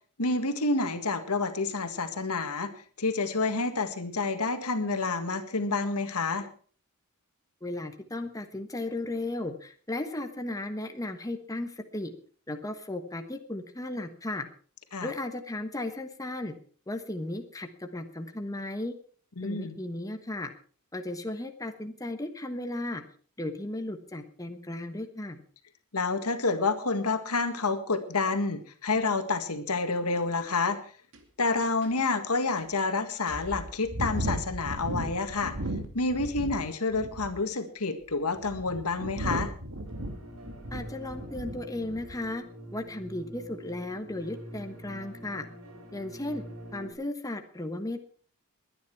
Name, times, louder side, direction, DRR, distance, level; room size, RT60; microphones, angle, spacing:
voice 1, 0.2-2.7 3.0-6.5 14.9-15.1 19.4-19.8 25.9-30.8 31.4-35.6 35.9-39.5, left 3 dB, 80° left, 8 dB, 1.8 m, -29 dB
voice 2, 7.6-12.1 12.5-14.5 15.0-16.5 16.9-18.9 19.4-20.5 20.9-23.0 23.4-25.4 40.7-42.4 42.7-45.5 45.9-46.4 46.7-48.0, left 2 dB, 15° left, 6 dB, 1.3 m, -35 dB
sound 1, 31.1-31.2 31.8-31.9 32.6-32.7 33.3-36.6 36.9-37.4 38.1-41.6 41.9-42.2, right 1 dB, 60° right, 2.6 m, -35 dB
sound 2, 39.8-46.9, right 1 dB, 85° right, 5.5 m, -45 dB
21.5 x 10.0 x 4.7 m, 0.44 s
head